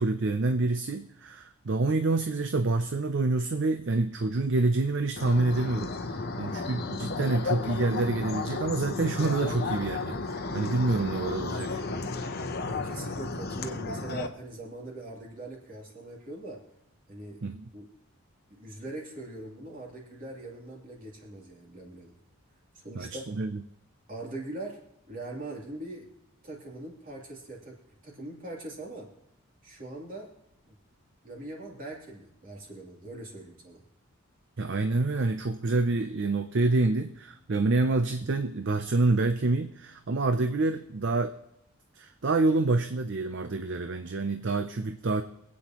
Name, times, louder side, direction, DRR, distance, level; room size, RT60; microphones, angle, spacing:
voice 1, 0.0-11.8 17.4-17.6 23.0-23.6 34.6-41.3 42.0-45.2, right 3 dB, 55° right, 9 dB, 0.6 m, -27 dB
sound 1, 5.2-14.3, left 3 dB, 45° left, 0.9 m, -33 dB
Singing, 5.6-12.1, left 1 dB, 10° left, 2.8 m, -49 dB
voice 2, 12.6-16.6 17.1-17.4 17.7-17.9 18.5-22.1 22.7-23.2 24.1-24.8 25.1-26.1 26.4-27.8 28.0-29.1 29.6-30.3 30.7-30.8 31.2-33.8, right 2 dB, 40° right, -2 dB, 3.0 m, -41 dB
24.5 x 8.6 x 3.0 m, 0.79 s
head